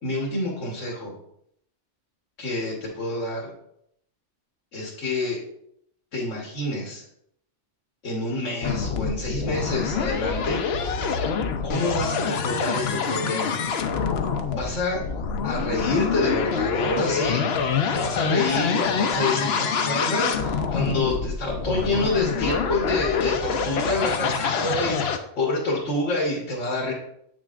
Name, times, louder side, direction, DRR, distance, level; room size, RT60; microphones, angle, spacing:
voice 1, 0.0-1.2 2.4-3.5 4.7-5.4 6.1-7.0 8.0-10.6 11.6-13.6 14.5-15.0 15.4-17.4 17.9-26.9, left 2 dB, 85° left, -3 dB, 1.7 m, -27 dB
sound 1, 8.6-25.2, left 6 dB, 65° left, 0.8 m, -26 dB
8.1 x 6.1 x 2.5 m, 0.73 s
omnidirectional pair, 1.2 m